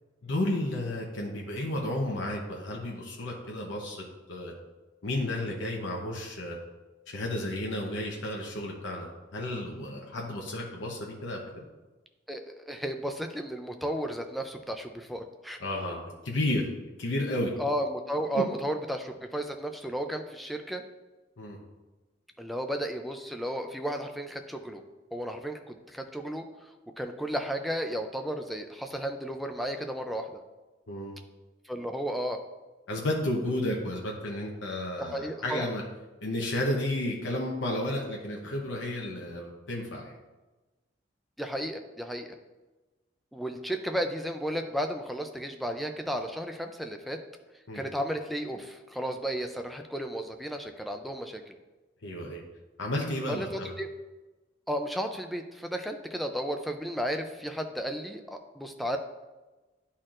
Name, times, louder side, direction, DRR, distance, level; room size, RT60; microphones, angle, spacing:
voice 1, 0.2-4.5 5.0-6.6 7.1-11.6 15.6-16.7 17.0-17.5 18.3-18.4 21.4-21.6 30.9-31.2 32.9-35.8 36.2-40.2 47.7-47.8 52.0-52.4 52.8-53.7, left 1 dB, 85° left, -1 dB, 0.8 m, -32 dB
voice 2, 12.3-15.6 17.6-20.8 22.4-24.8 25.1-26.4 27.0-30.4 31.6-32.4 35.0-35.7 41.4-42.3 43.3-47.2 47.7-51.6 53.3-53.5 53.8-53.9 54.7-59.0, equal, ahead, 5 dB, 0.4 m, -33 dB
10.5 x 4.3 x 2.5 m, 1.2 s
head